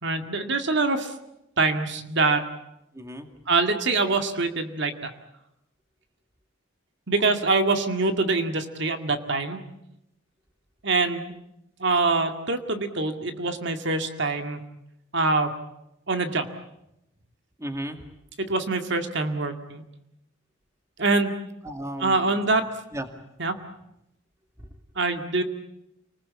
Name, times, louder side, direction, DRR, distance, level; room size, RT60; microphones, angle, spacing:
voice 1, 0.0-1.1 1.6-2.5 3.5-5.1 7.1-9.6 10.8-11.3 11.8-14.6 15.1-15.5 16.1-16.5 18.4-19.9 21.0-21.4 22.0-22.6 23.4-23.5 25.0-25.4, right 3 dB, 60° right, 6 dB, 2.1 m, -24 dB
voice 2, 2.9-3.3 17.6-18.0 21.6-22.4 22.9-23.1 24.6-24.7, right 1 dB, 15° right, 6 dB, 2.3 m, -34 dB
29.0 x 20.5 x 8.6 m, 0.85 s
head